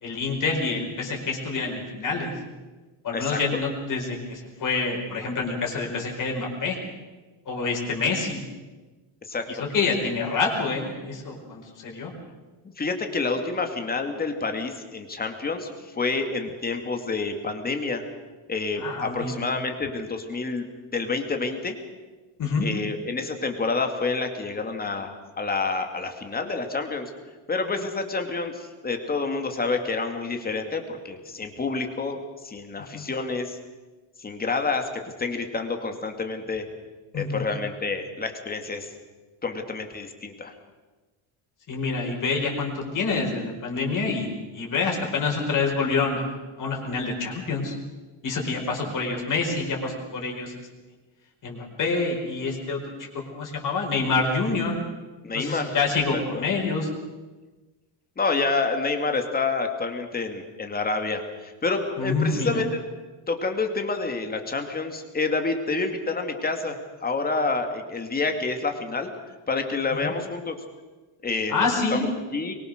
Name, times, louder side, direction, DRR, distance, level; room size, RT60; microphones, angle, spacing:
voice 1, 0.0-2.3 3.0-6.8 7.5-8.4 9.5-12.1 18.8-19.4 22.4-22.7 32.9-33.1 37.1-37.4 41.7-46.3 46.6-47.7 48.2-50.5 51.4-52.8 53.1-54.7 55.3-56.9 62.0-62.6 70.0-70.1 71.5-72.1, left 4 dB, 40° left, 0 dB, 5.1 m, -27 dB
voice 2, 12.8-18.0 18.5-20.7 20.9-21.8 22.6-27.1 27.5-33.6 34.2-36.6 37.1-38.9 39.4-40.5 48.8-48.9 55.2-55.7 56.1-56.4 58.2-62.8 63.3-69.1 69.5-70.6 71.2-72.5, left 3 dB, 20° left, 5 dB, 2.4 m, -28 dB
23.5 x 23.5 x 6.6 m, 1.2 s
cardioid pair, 165°, 49 cm